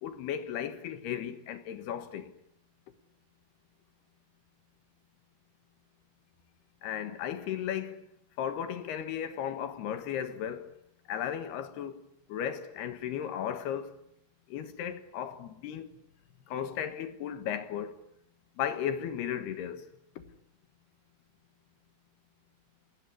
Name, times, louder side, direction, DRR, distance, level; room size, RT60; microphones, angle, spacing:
voice 1, 0.0-2.3 6.8-8.1 8.4-10.7 11.1-12.0 12.3-14.0 14.5-15.9 16.5-18.0 18.6-19.9, left 9 dB, 75° left, 3.5 m, -35 dB
28.5 x 18.0 x 9.9 m
omnidirectional pair, 4.8 m